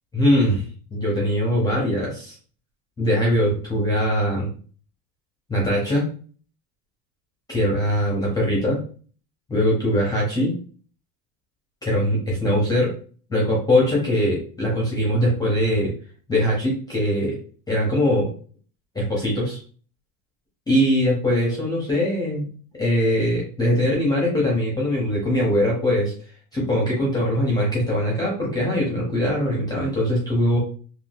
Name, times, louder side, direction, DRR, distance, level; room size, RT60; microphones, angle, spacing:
voice 1, 0.1-0.6 0.9-2.3 3.0-4.5 5.5-6.1 7.5-8.8 9.5-10.5 11.8-12.9 13.3-15.9 16.3-17.4 17.7-18.3 18.9-19.6 20.7-22.5 22.8-26.1 26.5-30.6, equal, 10° left, -4 dB, 0.7 m, -21 dB
3.6 x 2.3 x 2.3 m, 0.41 s
supercardioid pair, 150°, 44 cm